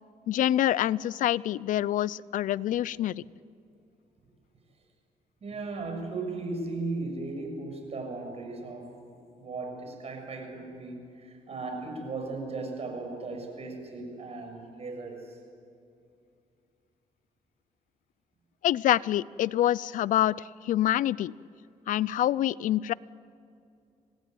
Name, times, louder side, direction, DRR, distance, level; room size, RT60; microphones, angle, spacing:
voice 1, 0.3-3.2 18.6-21.3 21.9-22.9, left 12 dB, 75° left, 21 dB, 0.5 m, -26 dB
voice 2, 5.4-9.0 9.4-15.4, right 3 dB, 50° right, 4 dB, 7.1 m, -37 dB
26.5 x 18.5 x 9.4 m, 2.5 s
cardioid pair, 85°, 14 cm